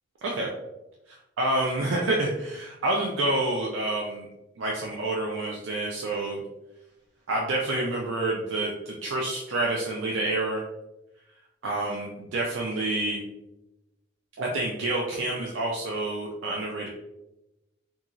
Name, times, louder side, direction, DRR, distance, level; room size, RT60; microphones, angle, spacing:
voice 1, 0.2-0.5 1.4-4.3 4.6-6.4 7.3-10.6 11.6-13.3 14.4-16.9, right 2 dB, 80° right, -2 dB, 0.4 m, -28 dB
2.9 x 2.3 x 2.5 m, 0.96 s
head